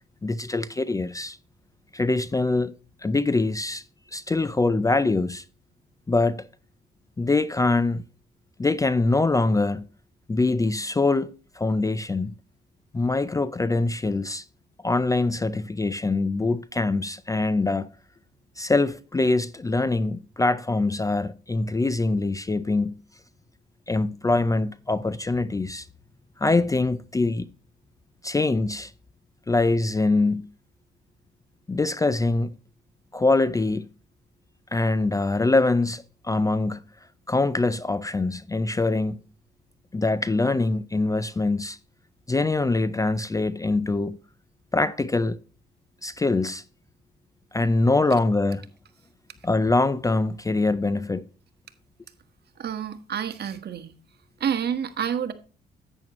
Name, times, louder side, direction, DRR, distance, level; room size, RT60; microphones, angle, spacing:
voice 1, 0.2-1.4 1.9-2.7 3.0-3.8 4.1-5.4 6.1-6.4 7.2-8.0 8.6-9.9 10.3-11.3 11.6-12.3 12.9-14.4 14.8-17.9 18.6-23.0 23.9-25.9 26.4-27.5 28.2-28.9 29.5-30.5 31.7-32.5 33.1-33.9 34.7-36.8 37.3-39.2 39.9-41.8 42.3-44.2 44.7-45.4 46.0-46.6 47.5-48.6 49.4-51.2, left 3 dB, 15° left, 0.5 m, -23 dB
voice 2, 52.6-53.9 54.4-55.3, right 8 dB, 55° right, 1.4 m, -28 dB
10.5 x 8.9 x 3.0 m
cardioid pair, 90°, 20 cm